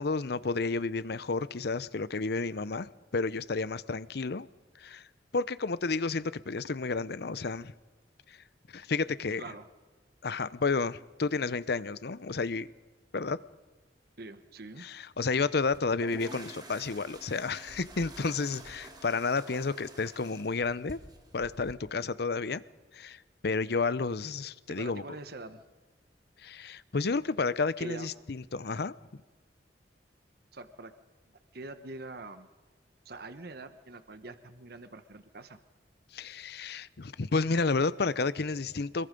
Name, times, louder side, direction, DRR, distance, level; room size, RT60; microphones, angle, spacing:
voice 1, 0.0-4.5 4.8-5.1 5.3-7.7 8.3-8.4 8.7-9.4 10.2-12.7 13.1-13.4 14.8-21.0 21.3-22.6 22.9-25.0 26.4-28.9 36.1-39.1, left 4 dB, 65° left, 0.7 m, -31 dB
voice 2, 9.3-9.7 14.2-14.9 24.7-25.6 27.8-28.1 30.5-30.9 31.5-32.5 33.0-35.6, right 2 dB, 60° right, 1.2 m, -44 dB
sound 1, 15.7-21.7, right 2 dB, 25° right, 3.3 m, -49 dB
25.0 x 21.5 x 5.3 m
head